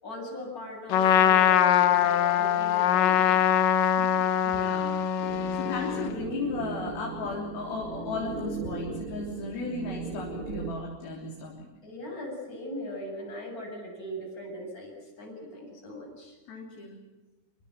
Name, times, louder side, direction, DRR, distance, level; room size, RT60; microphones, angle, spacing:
voice 1, 0.0-3.5 3.8-4.2 11.8-16.4, equal, 15° left, -1 dB, 8.1 m, -39 dB
Trumpet, 0.9-6.1, left 10 dB, 90° left, 1.9 m, -23 dB
voice 2, 4.5-5.1 5.5-11.7 16.5-17.0, left 3 dB, 50° left, -1 dB, 5.1 m, -35 dB
sound 1, 5.2-10.7, right 4 dB, 80° right, 1.2 m, -38 dB
26.5 x 25.0 x 7.6 m, 1.2 s
omnidirectional pair, 5.7 m